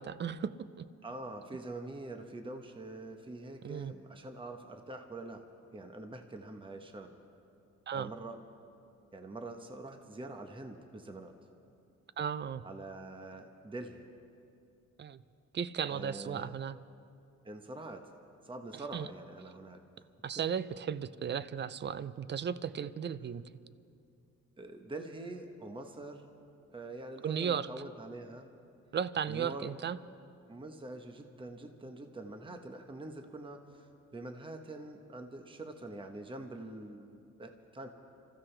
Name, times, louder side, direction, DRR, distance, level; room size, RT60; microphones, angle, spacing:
voice 1, 0.0-0.9 3.6-3.9 7.9-8.1 12.2-12.6 15.0-15.2 15.5-16.8 18.9-19.1 20.2-23.4 27.2-27.7 28.9-30.0, right 7 dB, 35° right, 15 dB, 0.5 m, -35 dB
voice 2, 1.0-5.4 5.7-7.2 7.9-8.4 9.1-11.3 12.6-14.1 15.9-16.5 17.4-18.1 18.4-19.8 24.6-26.3 26.7-28.5 29.3-29.7 30.5-37.9, right 2 dB, 15° right, 5 dB, 1.0 m, -45 dB
26.5 x 14.5 x 3.3 m, 2.5 s
cardioid pair, 90°, 30 cm